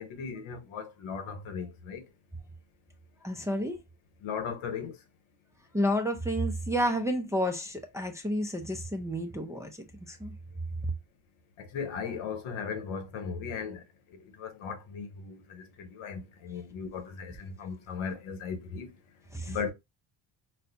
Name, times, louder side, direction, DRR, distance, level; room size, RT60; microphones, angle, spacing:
voice 1, 0.0-2.0 4.2-5.0 11.6-13.8 14.1-18.9 19.4-19.7, left 6 dB, 80° left, 1.0 m, -37 dB
voice 2, 3.2-3.8 5.7-9.7 10.1-10.3 19.3-19.6, equal, 5° right, 0.5 m, -30 dB
4.1 x 2.3 x 2.6 m
cardioid pair, 115°, 49 cm